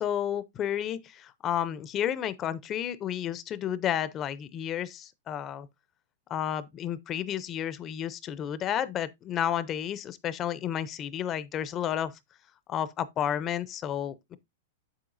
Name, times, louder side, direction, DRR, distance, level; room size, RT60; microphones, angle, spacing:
voice 1, 0.0-5.7 6.3-12.1 12.7-14.4, left 10 dB, 20° left, 0.5 m, -31 dB
7.9 x 7.7 x 2.5 m
supercardioid pair, 165°, 0 cm